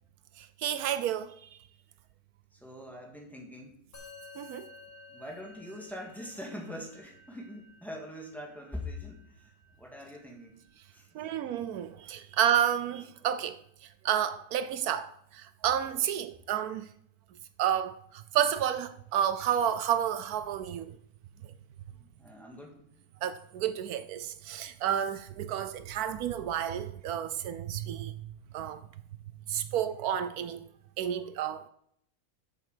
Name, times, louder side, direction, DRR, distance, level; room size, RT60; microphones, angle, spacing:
voice 1, 0.4-1.3 4.4-4.7 11.1-13.6 14.0-16.9 17.6-21.0 23.2-28.1 28.5-28.8 29.5-30.7 31.0-31.7, right 10 dB, 75° right, 1.1 m, -30 dB
voice 2, 2.5-3.8 5.1-10.6 10.9-11.3 21.9-23.0, left 1 dB, ahead, 1.9 m, -43 dB
Musical instrument, 3.9-13.5, left 3 dB, 70° left, 4.2 m, -55 dB
7.8 x 7.4 x 6.7 m
omnidirectional pair, 1.6 m